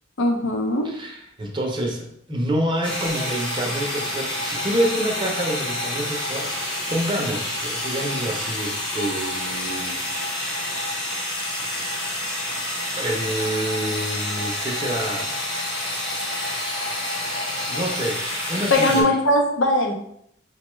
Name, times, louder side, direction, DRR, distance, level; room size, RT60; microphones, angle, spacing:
voice 1, 0.2-0.9 18.7-19.9, left 1 dB, 75° left, 2 dB, 0.7 m, -20 dB
voice 2, 0.8-10.0 10.4-11.0 13.0-15.3 17.7-18.2 18.5-19.1, right 1 dB, 25° right, 0 dB, 0.5 m, -27 dB
sound 1, 2.8-19.0, left 1 dB, 25° left, 0.8 m, -28 dB
5.2 x 2.2 x 3.0 m, 0.71 s
head